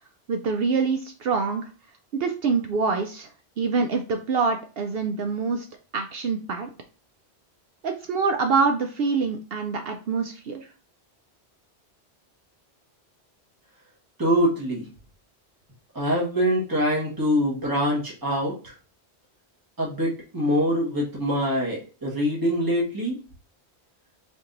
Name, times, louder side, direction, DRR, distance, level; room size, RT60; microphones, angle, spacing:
voice 1, 0.3-1.7 2.1-3.3 3.6-5.7 5.9-6.7 7.8-10.7, right 4 dB, 65° right, 5 dB, 0.7 m, -25 dB
voice 2, 14.2-14.9 15.9-18.7 19.8-23.2, equal, 20° right, -5 dB, 1.4 m, -24 dB
4.5 x 2.8 x 3.9 m, 0.35 s
omnidirectional pair, 1.1 m